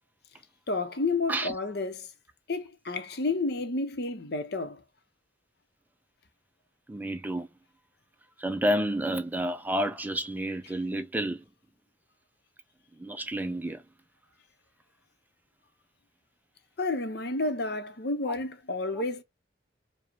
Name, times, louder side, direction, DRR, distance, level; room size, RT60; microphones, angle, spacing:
voice 1, 0.7-2.1 2.5-4.8 16.8-19.2, left 3 dB, 60° left, 0.8 m, -30 dB
voice 2, 6.9-7.5 8.4-11.4 13.0-13.8 18.9-19.0, right 1 dB, 10° right, 0.4 m, -30 dB
5.0 x 2.2 x 3.0 m
head